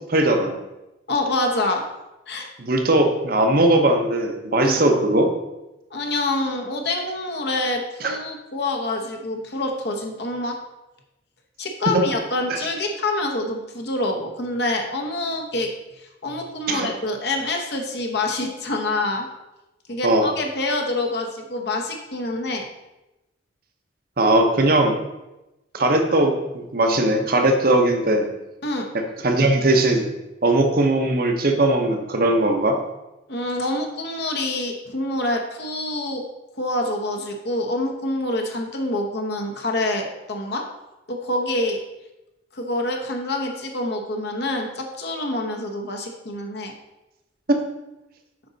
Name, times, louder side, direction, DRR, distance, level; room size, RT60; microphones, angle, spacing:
voice 1, 0.1-0.6 2.6-5.3 8.0-8.2 11.9-12.0 12.5-12.6 16.7-16.9 20.0-20.3 24.2-25.0 25.7-28.3 28.9-30.1 30.4-32.8 47.5-47.6, right 1 dB, 50° right, 5 dB, 0.9 m, -19 dB
voice 2, 1.1-1.8 2.3-2.5 4.6-4.8 5.9-10.6 11.6-19.3 19.9-22.6 28.6-28.9 33.3-36.2 36.6-40.6 41.1-41.8 42.5-46.7, left 2 dB, 55° left, 2 dB, 0.9 m, -26 dB
7.8 x 5.2 x 4.0 m, 0.98 s
head